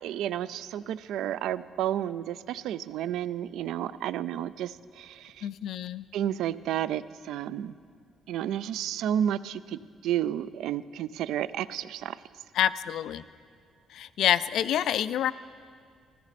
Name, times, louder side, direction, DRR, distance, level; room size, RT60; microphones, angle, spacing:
voice 1, 0.0-5.5 6.1-7.7 8.3-12.2, right 11 dB, 80° right, 17 dB, 0.3 m, -31 dB
voice 2, 5.4-6.0 12.5-13.2 13.9-15.3, left 10 dB, 65° left, 15 dB, 0.3 m, -27 dB
15.0 x 14.0 x 4.2 m, 2.1 s
cardioid pair, 175°, 0 cm